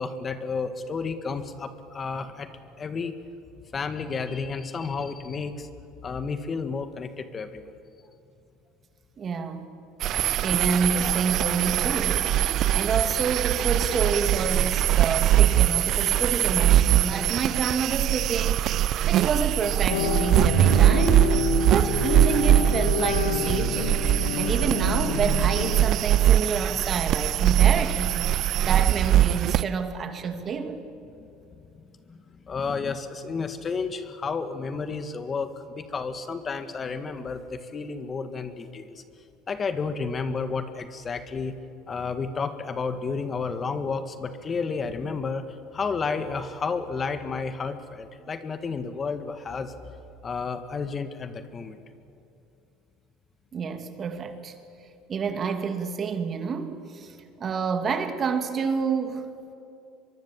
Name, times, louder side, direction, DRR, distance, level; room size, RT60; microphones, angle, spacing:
voice 1, 0.0-2.5 2.8-3.1 3.7-5.7 6.0-7.7 31.2-31.3 32.1-39.0 39.5-41.5 41.9-45.4 45.7-49.7 50.2-51.8, left 5 dB, 35° left, 9 dB, 1.8 m, -31 dB
voice 2, 9.2-9.7 10.4-12.3 12.7-18.6 19.1-21.3 21.7-24.0 24.4-28.4 28.7-30.8 53.5-54.5 55.1-57.1 57.4-59.2, right 5 dB, 40° right, 7 dB, 2.5 m, -28 dB
sound 1, 10.0-29.6, right 12 dB, 55° right, 0.5 m, -22 dB
sound 2, 19.9-25.9, left 6 dB, 90° left, 1.3 m, -28 dB
23.5 x 23.5 x 7.6 m, 2.7 s
hypercardioid pair, 80°, 0 cm